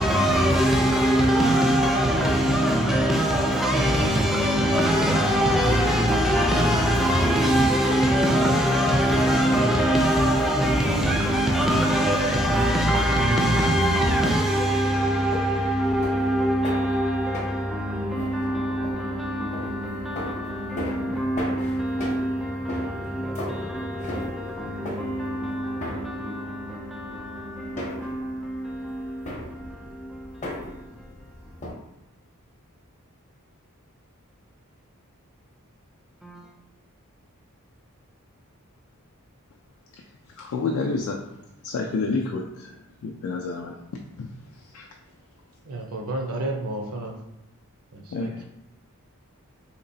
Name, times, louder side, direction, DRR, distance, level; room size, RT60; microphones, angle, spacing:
voice 1, 0.0-31.1 31.5-31.6 36.2-36.5, equal, ahead, 0.4 m, -23 dB
sound 1, 14.8-31.7, left 1 dB, 35° left, 0.7 m, -38 dB
voice 2, 40.4-41.2 41.6-42.7 43.0-43.7 44.2-44.3 44.7-44.9 48.1-48.3, left 3 dB, 70° left, 0.4 m, -28 dB
voice 3, 45.6-47.2 47.9-48.5, right 2 dB, 75° right, 0.6 m, -31 dB
3.9 x 2.9 x 2.6 m
head